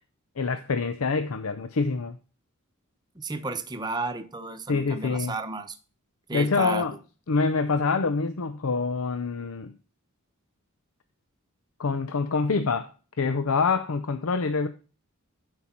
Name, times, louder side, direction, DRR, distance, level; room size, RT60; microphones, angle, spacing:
voice 1, 0.4-2.2 4.7-5.3 6.3-6.9 7.3-9.7 11.8-12.9 13.2-14.7, left 4 dB, 80° left, 0.6 m, -26 dB
voice 2, 3.1-5.8 6.3-6.9, right 3 dB, 20° right, 0.9 m, -33 dB
11.0 x 4.8 x 4.3 m
head